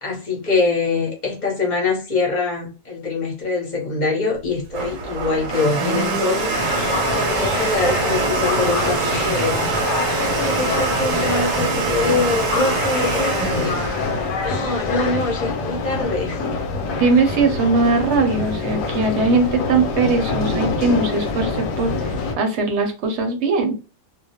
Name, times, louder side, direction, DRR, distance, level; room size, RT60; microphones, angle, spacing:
voice 1, 0.0-6.6 7.1-9.6 10.1-16.4, left 3 dB, 45° left, -2 dB, 0.7 m, -24 dB
Domestic sounds home sounds, 4.4-15.1, right 5 dB, 85° right, 1.0 m, -24 dB
sound 1, 6.5-22.4, left 4 dB, 90° left, 1.0 m, -25 dB
voice 2, 17.0-23.7, right 3 dB, 70° right, 5 dB, 0.8 m, -20 dB
2.3 x 2.0 x 2.7 m, 0.32 s
omnidirectional pair, 1.3 m